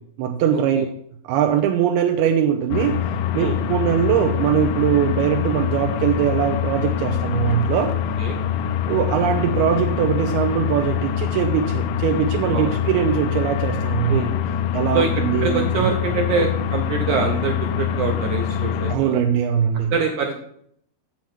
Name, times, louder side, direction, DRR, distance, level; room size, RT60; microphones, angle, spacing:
voice 1, 0.2-0.9 1.2-3.0 3.3-8.0 8.9-14.2 14.7-15.9 18.9-19.9, right 9 dB, 90° right, 4 dB, 2.6 m, -21 dB
sound 1, 2.7-19.0, left 9 dB, 90° left, 2.7 m, -24 dB
voice 2, 12.5-13.1 14.1-14.3 14.9-15.1 15.4-19.2 19.9-20.4, right 5 dB, 75° right, 2 dB, 1.9 m, -24 dB
7.8 x 7.5 x 5.8 m, 0.67 s
omnidirectional pair, 4.6 m